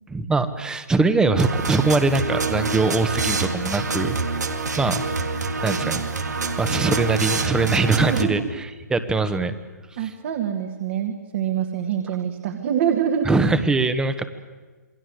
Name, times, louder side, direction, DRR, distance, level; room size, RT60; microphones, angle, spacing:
voice 1, 0.1-4.2 4.8-5.0 5.6-6.0 6.6-9.5 10.0-10.1 13.2-14.2, right 3 dB, 10° right, 12 dB, 1.4 m, -22 dB
sound 1, 1.4-8.2, right 4 dB, 80° right, 2.6 m, -26 dB
voice 2, 7.6-8.5 10.0-13.3, right 9 dB, 45° right, 4 dB, 2.3 m, -25 dB
28.0 x 21.5 x 8.1 m, 1.3 s
figure-of-eight pair, 130°, 9 cm